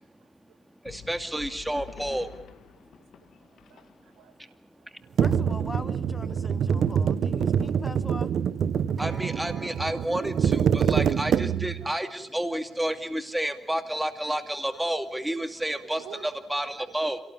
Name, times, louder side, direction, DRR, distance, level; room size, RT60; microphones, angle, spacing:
voice 1, 0.2-0.6 0.9-1.0 2.9-4.9 6.7-6.9 8.8-9.0 11.8-12.1 15.8-16.3 16.6-17.0, right 8 dB, 90° right, 3 dB, 4.5 m, -51 dB
voice 2, 0.8-2.3 9.0-17.2, right 1 dB, 5° right, 8 dB, 2.4 m, -30 dB
sound 1, 0.9-4.4, left 8 dB, 65° left, 1.9 m, -47 dB
voice 3, 5.2-8.3, left 2 dB, 15° left, 13 dB, 1.2 m, -41 dB
sound 2, 5.2-11.9, right 8 dB, 60° right, 1.1 m, -25 dB
Acoustic guitar, 9.0-13.2 14.1-14.2, right 1 dB, 25° right, 4.1 m, -51 dB
27.0 x 18.5 x 9.0 m, 0.73 s
cardioid pair, 90°, 0 cm